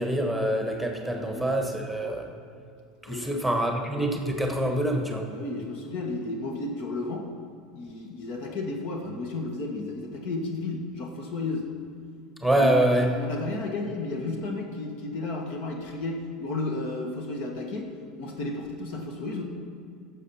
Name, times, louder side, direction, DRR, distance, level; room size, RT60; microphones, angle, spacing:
voice 1, 0.0-2.3 3.0-5.3 12.4-13.1, right 1 dB, ahead, 3 dB, 1.4 m, -25 dB
voice 2, 1.2-1.6 3.1-3.4 5.3-7.3 7.7-11.7 12.6-19.4, left 2 dB, 55° left, 2 dB, 1.7 m, -33 dB
16.0 x 7.4 x 4.3 m, 2.5 s
hypercardioid pair, 80°, 3 cm